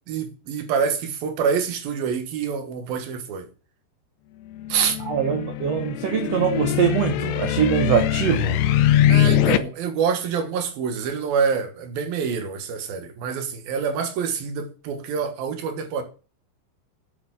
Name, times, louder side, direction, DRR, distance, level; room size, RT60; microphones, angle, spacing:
voice 1, 0.1-3.5 4.7-5.0 9.1-16.0, right 6 dB, 65° right, 3.1 m, -26 dB
sound 1, 4.6-9.6, left 11 dB, 80° left, 2.8 m, -22 dB
voice 2, 5.1-8.6, right 8 dB, 85° right, 1.4 m, -23 dB
8.6 x 8.5 x 7.3 m
omnidirectional pair, 4.7 m